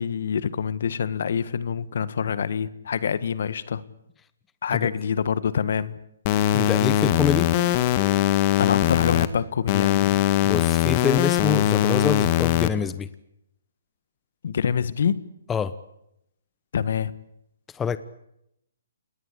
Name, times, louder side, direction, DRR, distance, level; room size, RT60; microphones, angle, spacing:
voice 1, 0.0-3.8 4.6-6.0 8.6-10.2 14.4-15.2 16.7-17.1, left 7 dB, 60° left, 16 dB, 1.5 m, -26 dB
sound 1, 6.3-9.3 9.7-12.7, left 12 dB, 35° left, 1.8 m, -21 dB
voice 2, 6.5-7.5 10.4-13.1 15.5-15.8 17.7-18.0, left 7 dB, 10° left, 14 dB, 1.0 m, -26 dB
27.5 x 20.0 x 8.5 m, 0.81 s
hypercardioid pair, 145°, 0 cm